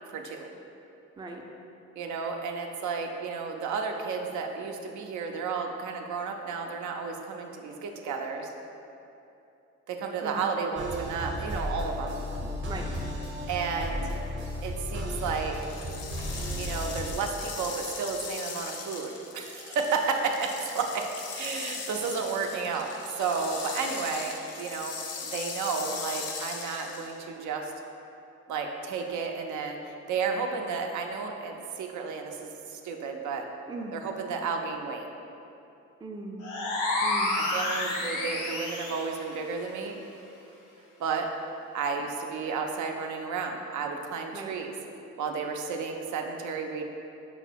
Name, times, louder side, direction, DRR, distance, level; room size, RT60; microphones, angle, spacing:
voice 1, 0.1-0.5 2.0-8.5 9.9-12.2 13.5-14.0 14.6-15.6 16.6-21.1 21.3-25.0 25.2-27.7 28.5-33.4 33.9-35.0 37.4-40.0 41.0-41.3 41.7-44.7 45.2-46.8, right 5 dB, 75° right, 3 dB, 0.5 m, -32 dB
sound 1, 10.8-17.1, equal, 40° right, 0.7 m, -34 dB
voice 2, 12.4-12.9 33.7-33.9 36.0-36.4 37.0-37.4 44.3-44.6, right 3 dB, 15° right, 1 dB, 0.3 m, -39 dB
sound 2, 15.6-27.2, left 5 dB, 55° left, 0.5 m, -39 dB
sound 3, 36.4-39.1, left 2 dB, 85° left, 0.8 m, -29 dB
5.4 x 2.0 x 4.5 m, 2.9 s
cardioid pair, 90°, 30 cm